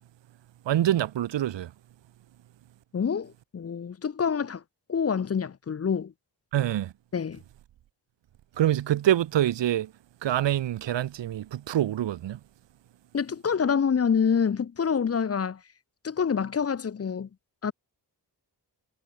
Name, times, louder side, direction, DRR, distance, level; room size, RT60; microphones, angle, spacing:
voice 1, 0.7-1.7 6.5-6.9 8.6-9.9 10.2-12.4, right 12 dB, 90° right, 0.7 m, -25 dB
voice 2, 2.9-4.6 4.9-6.1 7.1-7.4 13.1-15.6 16.0-17.3 17.6-17.7, left 6 dB, 35° left, 0.6 m, -26 dB
wide cardioid pair, 75°, 42 cm